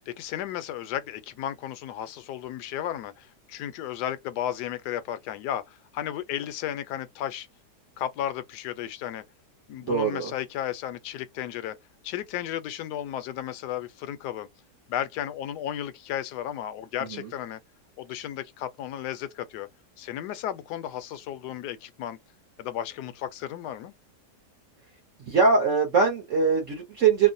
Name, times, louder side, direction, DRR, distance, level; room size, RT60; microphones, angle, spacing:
voice 1, 0.1-7.5 8.0-9.2 9.7-11.8 12.0-14.5 14.9-17.6 18.0-19.7 20.0-22.2 22.6-23.9, left 11 dB, 80° left, 1.1 m, -34 dB
voice 2, 9.9-10.3 17.1-17.3 25.3-27.3, right 5 dB, 55° right, 1.0 m, -22 dB
3.0 x 2.1 x 2.6 m
omnidirectional pair, 1.8 m